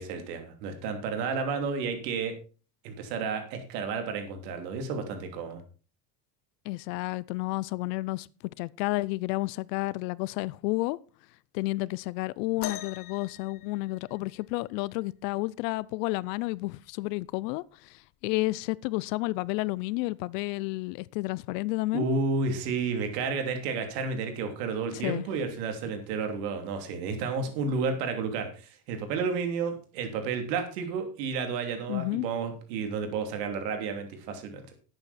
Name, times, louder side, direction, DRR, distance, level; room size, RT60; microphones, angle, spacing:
voice 1, 0.0-2.3 2.8-5.6 21.9-34.7, right 4 dB, 80° right, 3.1 m, -31 dB
voice 2, 6.7-8.3 8.6-11.0 11.5-17.9 18.2-22.0 24.9-25.3 31.9-32.3, left 21 dB, 80° left, 0.7 m, -31 dB
sound 1, 12.6-14.5 16.2-16.3 17.1-17.3 18.2-18.3, left 12 dB, 45° left, 1.2 m, -41 dB
11.5 x 8.7 x 4.2 m
supercardioid pair, 120°, 48 cm